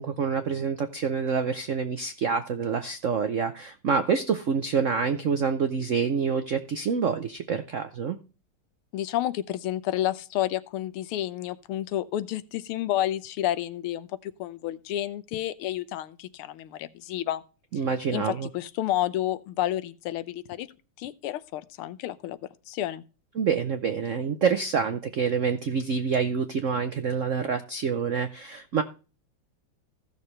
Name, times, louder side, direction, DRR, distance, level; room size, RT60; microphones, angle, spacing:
voice 1, 0.0-8.2 17.7-18.5 23.4-28.8, right 6 dB, 80° right, 0.6 m, -27 dB
voice 2, 8.9-17.4 18.1-20.7 21.0-22.4 22.7-23.0, left 13 dB, 90° left, 1.6 m, -30 dB
15.5 x 6.6 x 3.2 m
omnidirectional pair, 2.4 m